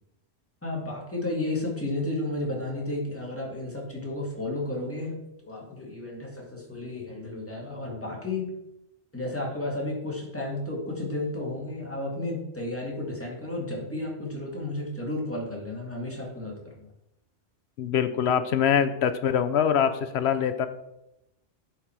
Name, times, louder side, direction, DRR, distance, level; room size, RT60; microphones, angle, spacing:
voice 1, 0.6-5.1 5.4-8.5 9.1-16.9, left 2 dB, 10° left, -2 dB, 2.0 m, -32 dB
voice 2, 17.8-20.7, left 8 dB, 70° left, 10 dB, 0.9 m, -24 dB
10.5 x 4.7 x 4.4 m, 0.87 s
omnidirectional pair, 1.2 m